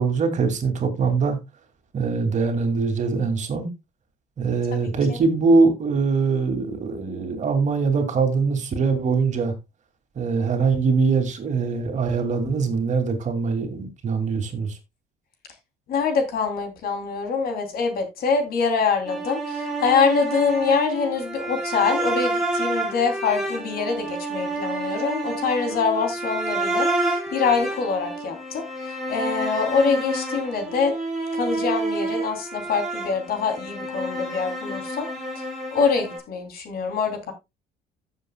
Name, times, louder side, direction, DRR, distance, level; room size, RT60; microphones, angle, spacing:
voice 1, 0.0-1.4 1.9-3.7 4.4-9.5 10.2-14.8, right 4 dB, 45° right, 2.5 m, -22 dB
voice 2, 4.8-5.2 15.9-30.9 31.3-35.1 35.3-35.5 35.7-37.3, left 5 dB, 65° left, 3.1 m, -24 dB
sound 1, 19.0-36.2, right 2 dB, ahead, 5.3 m, -29 dB
15.5 x 7.3 x 2.3 m
cardioid pair, 110°, 17 cm